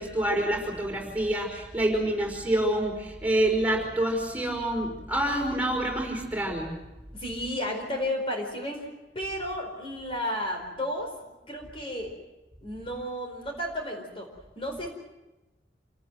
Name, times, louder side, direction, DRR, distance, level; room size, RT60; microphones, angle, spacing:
voice 1, 0.0-6.7, right 1 dB, 10° right, 0 dB, 5.3 m, -27 dB
voice 2, 7.1-8.9 9.1-12.1 12.6-14.3 14.6-14.9, left 1 dB, 30° left, 2 dB, 4.6 m, -33 dB
28.0 x 18.5 x 7.8 m, 1.0 s
head